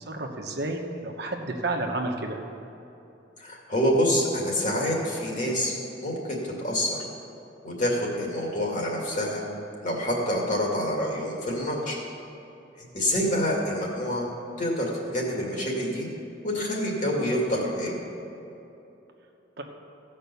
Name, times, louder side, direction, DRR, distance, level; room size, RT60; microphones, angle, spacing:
voice 1, 0.1-2.4 19.6-19.7, right 2 dB, 60° right, 2 dB, 1.1 m, -31 dB
voice 2, 3.4-7.0 7.6-9.4 9.8-12.0 12.8-14.3 14.6-16.1 16.4-18.0, equal, 45° left, -2 dB, 2.3 m, -27 dB
15.5 x 5.4 x 6.9 m, 2.9 s
head